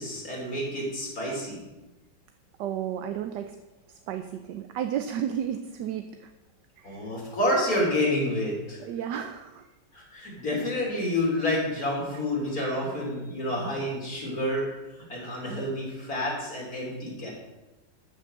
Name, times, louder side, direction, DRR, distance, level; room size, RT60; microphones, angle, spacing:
voice 1, 0.0-1.6 6.8-8.8 9.9-14.7 15.1-17.3, left 1 dB, 50° left, -3 dB, 4.0 m, -29 dB
voice 2, 2.6-3.5 4.1-6.1 6.8-7.0 8.8-9.6, right 9 dB, 70° right, 8 dB, 1.2 m, -32 dB
12.5 x 6.4 x 6.5 m, 1.1 s
omnidirectional pair, 2.1 m